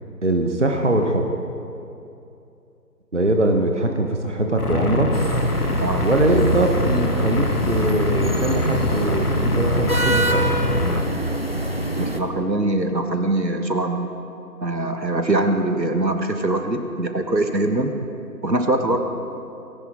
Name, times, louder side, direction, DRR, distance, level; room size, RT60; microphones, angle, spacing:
voice 1, 0.2-1.3 3.1-5.1 6.0-10.6 18.9-19.0, right 1 dB, 45° right, 3 dB, 1.2 m, -22 dB
sound 1, 4.6-11.0, left 1 dB, 65° left, 1.5 m, -23 dB
sound 2, 5.1-12.2, right 1 dB, 35° left, 0.8 m, -26 dB
voice 2, 12.0-14.2 14.6-17.9 18.4-19.0, right 2 dB, 85° right, 5 dB, 1.7 m, -22 dB
19.5 x 17.5 x 3.7 m, 2.7 s
figure-of-eight pair, 165°, 49 cm